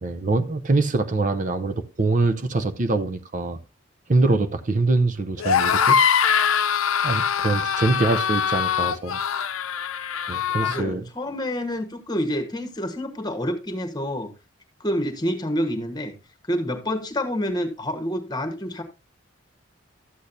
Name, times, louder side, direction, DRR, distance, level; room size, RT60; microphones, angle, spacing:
voice 1, 0.0-3.6 4.1-6.0 7.0-9.2 10.3-11.0, right 3 dB, 40° right, 0.6 m, -23 dB
sound 1, 5.4-10.8, left 7 dB, 85° left, 0.7 m, -22 dB
voice 2, 10.6-14.3 14.8-16.1 16.5-18.8, equal, 20° left, 1.3 m, -28 dB
13.0 x 8.4 x 2.7 m
head